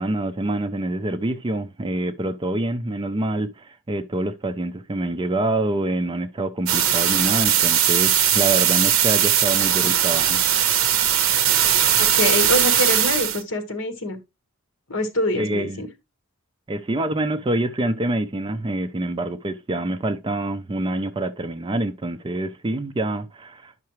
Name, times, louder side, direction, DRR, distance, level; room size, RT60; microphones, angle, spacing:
voice 1, 0.0-10.4 15.4-15.8 16.7-23.8, right 2 dB, 20° right, 0.4 m, -26 dB
sound 1, 6.7-13.4, right 9 dB, 65° right, 0.7 m, -19 dB
voice 2, 12.0-14.2 14.9-15.9, left 1 dB, 55° left, 1.5 m, -25 dB
9.4 x 5.7 x 3.0 m
head